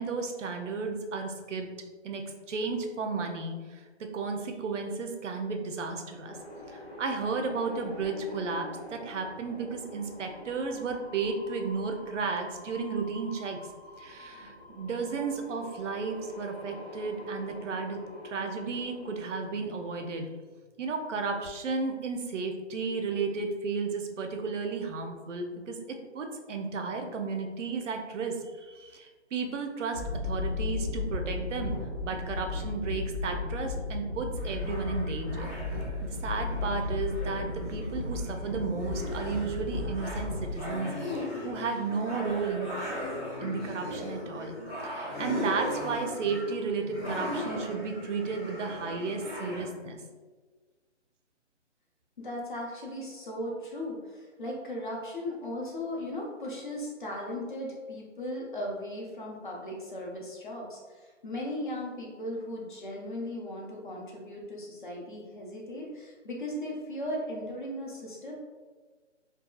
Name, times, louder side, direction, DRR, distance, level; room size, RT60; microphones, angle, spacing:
voice 1, 0.0-1.7 2.0-6.4 6.7-13.6 14.0-20.3 20.8-31.7 32.0-35.5 36.0-40.9 41.4-42.7 43.4-44.6 44.8-50.0, right 4 dB, 90° right, 4 dB, 0.6 m, -33 dB
sound 1, 6.2-20.2, left 1 dB, 65° left, 1.0 m, -47 dB
sound 2, 29.9-40.5, left 3 dB, 25° right, 0.5 m, -34 dB
sound 3, 34.4-49.7, left 1 dB, 10° left, 1.0 m, -38 dB
voice 2, 52.2-68.3, left 1 dB, 45° left, -2 dB, 0.6 m, -37 dB
2.7 x 2.3 x 2.3 m, 1.4 s
hypercardioid pair, 170°, 35 cm